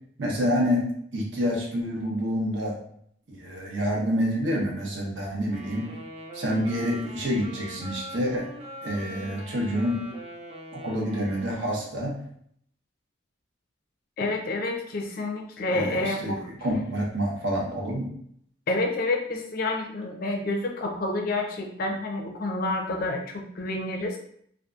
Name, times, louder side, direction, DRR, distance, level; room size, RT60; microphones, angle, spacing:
voice 1, 0.2-0.9 1.1-2.8 3.3-5.9 6.3-8.5 8.8-10.0 10.7-12.2 15.7-18.1, equal, 70° right, -2 dB, 0.8 m, -28 dB
Wind instrument woodwind instrument, 5.5-11.9, right 1 dB, 30° right, 0.4 m, -42 dB
voice 2, 14.2-16.4 18.7-24.2, left 2 dB, 50° left, 2 dB, 0.4 m, -29 dB
2.7 x 2.3 x 2.3 m, 0.66 s
head